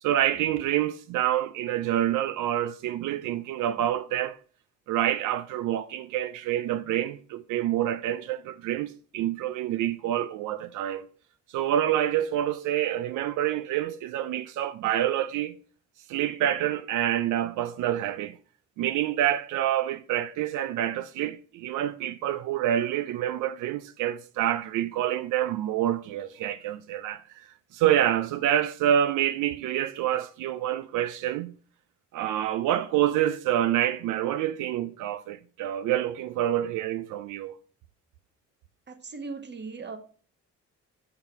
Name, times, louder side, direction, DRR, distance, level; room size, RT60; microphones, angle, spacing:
voice 1, 0.0-4.4 4.9-11.1 11.5-15.5 16.1-18.4 18.8-31.5 32.1-37.6, right 11 dB, 90° right, 0.5 m, -27 dB
voice 2, 38.9-40.0, right 4 dB, 35° right, 1.2 m, -38 dB
5.7 x 5.6 x 4.4 m
cardioid pair, 90°, 30 cm